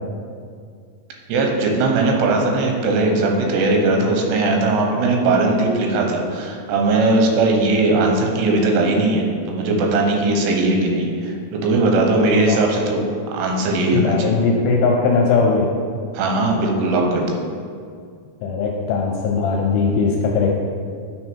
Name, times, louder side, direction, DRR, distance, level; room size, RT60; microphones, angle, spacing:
voice 1, 1.3-13.0 13.3-14.3 16.1-17.4, right 2 dB, 85° right, 2 dB, 3.0 m, -19 dB
voice 2, 12.3-12.7 13.9-15.7 18.4-20.6, left 4 dB, 80° left, 0 dB, 2.2 m, -19 dB
9.5 x 4.1 x 4.4 m, 2.2 s
omnidirectional pair, 4.8 m